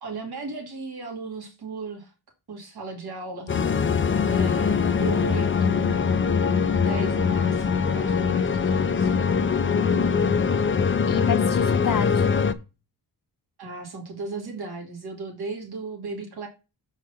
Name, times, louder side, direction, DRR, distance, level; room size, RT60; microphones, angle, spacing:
voice 1, 0.0-2.1 2.5-3.5 4.2-6.3 6.8-9.2 13.6-16.5, right 3 dB, 70° right, 2.6 m, -36 dB
sound 1, 3.5-12.5, left 6 dB, 30° left, 0.5 m, -22 dB
voice 2, 9.7-10.5 11.0-12.3, left 6 dB, 55° left, 1.0 m, -29 dB
7.7 x 4.9 x 5.6 m
wide cardioid pair, 175°, 39 cm